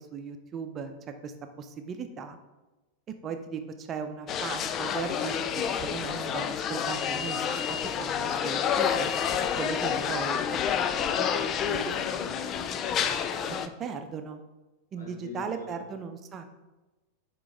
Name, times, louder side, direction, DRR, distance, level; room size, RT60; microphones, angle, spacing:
voice 1, 0.0-2.4 3.2-5.4 5.8-10.7 11.9-12.0 12.9-14.4 14.9-16.4, right 6 dB, 25° right, 7 dB, 0.7 m, -38 dB
sound 1, 4.3-13.7, left 8 dB, 30° left, 0.4 m, -29 dB
voice 2, 11.1-12.7 15.0-15.8, left 2 dB, 65° left, 0 dB, 1.8 m, -41 dB
10.0 x 3.9 x 3.5 m, 1.1 s
figure-of-eight pair, 90°, 0 cm